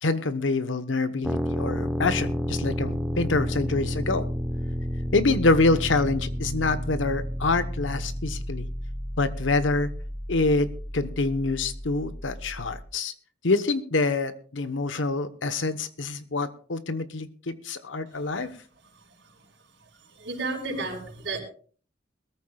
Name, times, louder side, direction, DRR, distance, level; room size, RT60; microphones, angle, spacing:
voice 1, 0.0-4.3 5.1-8.7 9.2-9.9 10.3-13.1 13.4-18.5, left 3 dB, 85° left, 12 dB, 1.1 m, -26 dB
sound 1, 1.2-12.9, equal, ahead, 0.9 m, -31 dB
voice 2, 20.1-21.4, right 3 dB, 70° right, -6 dB, 4.7 m, -32 dB
21.5 x 14.0 x 2.3 m, 0.43 s
head